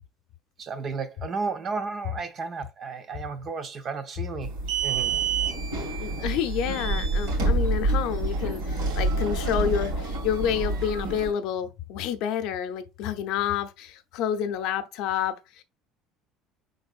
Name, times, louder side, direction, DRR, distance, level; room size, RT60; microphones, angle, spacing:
voice 1, 0.6-4.6 4.8-5.2, right 4 dB, 25° right, 0.5 m, -33 dB
sound 1, 4.4-11.3, right 3 dB, 85° right, 2.2 m, -27 dB
voice 2, 6.0-15.6, left 9 dB, 60° left, 0.6 m, -29 dB
5.3 x 3.8 x 2.4 m
cardioid pair, 175°, 0 cm